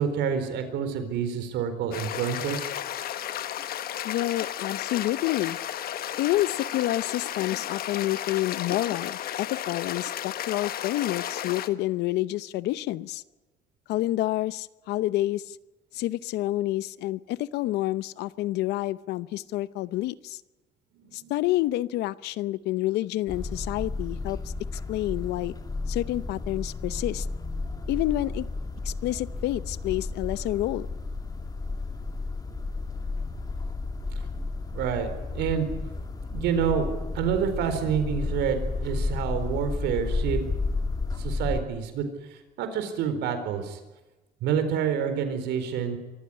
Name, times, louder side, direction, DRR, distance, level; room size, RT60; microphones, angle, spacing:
voice 1, 0.0-2.7 21.0-21.3 34.7-35.7 36.3-40.8 41.2-43.8 44.4-46.0, right 7 dB, 85° right, 9 dB, 4.3 m, -28 dB
sound 1, 1.9-11.7, left 11 dB, 60° left, 1.3 m, -33 dB
voice 2, 4.0-5.6 6.2-13.2 13.9-15.6 15.9-20.4 21.1-25.6 25.9-27.3 27.9-28.5 28.8-30.9, left 16 dB, 85° left, 17 dB, 0.8 m, -28 dB
sound 2, 23.3-41.6, left 3 dB, 20° left, 2.8 m, -32 dB
24.5 x 15.0 x 9.9 m, 1.1 s
cardioid pair, 110°, 17 cm